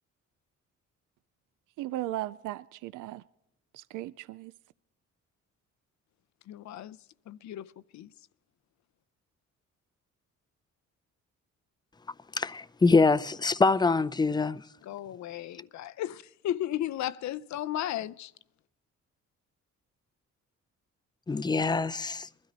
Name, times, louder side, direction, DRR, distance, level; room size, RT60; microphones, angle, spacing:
voice 1, 1.8-3.2 3.7-4.5, right 16 dB, 90° right, 0.5 m, -36 dB
voice 2, 6.5-7.0 7.3-8.1 14.8-18.3, left 12 dB, 70° left, 0.6 m, -35 dB
voice 3, 12.4-14.6 21.3-22.3, left 3 dB, 15° left, 0.5 m, -24 dB
21.5 x 13.0 x 4.0 m
cardioid pair, 90°, 30 cm